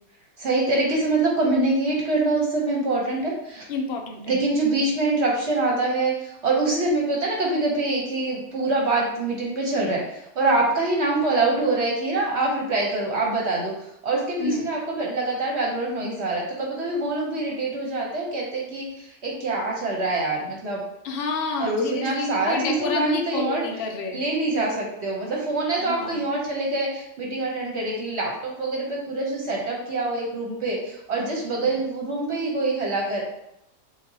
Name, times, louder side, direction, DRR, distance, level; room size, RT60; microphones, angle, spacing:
voice 1, 0.4-3.6 4.3-13.7 14.0-20.8 21.6-23.6 24.1-33.2, right 2 dB, 55° right, -2 dB, 1.0 m, -25 dB
voice 2, 3.7-4.3 14.4-14.7 21.0-24.2 25.8-26.2 31.5-31.7, left 4 dB, 55° left, 2 dB, 0.6 m, -29 dB
7.1 x 2.5 x 2.7 m, 0.81 s
omnidirectional pair, 1.6 m